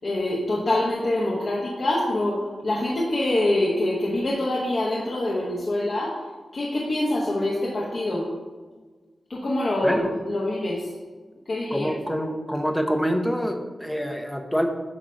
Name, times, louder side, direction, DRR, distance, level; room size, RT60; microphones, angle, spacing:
voice 1, 0.0-6.2 6.5-8.3 9.3-10.9 11.5-11.9, left 1 dB, 45° left, -5 dB, 1.1 m, -25 dB
voice 2, 11.7-14.7, equal, 5° left, 4 dB, 0.7 m, -26 dB
8.8 x 2.9 x 6.1 m, 1.4 s
wide cardioid pair, 150°, 0 cm